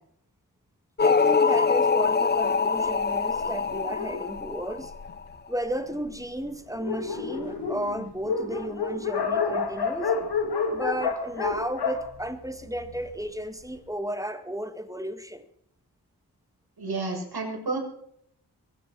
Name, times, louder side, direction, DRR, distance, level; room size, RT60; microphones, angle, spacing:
sound 1, 1.0-5.2, left 5 dB, 25° left, 0.6 m, -24 dB
voice 1, 1.0-4.9 5.5-10.2 10.7-15.5, equal, 10° right, 9 dB, 2.0 m, -33 dB
Dog, 2.4-5.4 6.1-6.2 6.4-6.5 6.7-13.1, left 5 dB, 75° left, 2.3 m, -30 dB
voice 2, 16.8-17.8, right 3 dB, 70° right, 0 dB, 6.8 m, -30 dB
23.0 x 9.2 x 6.2 m, 0.69 s
wide cardioid pair, 60°, 39 cm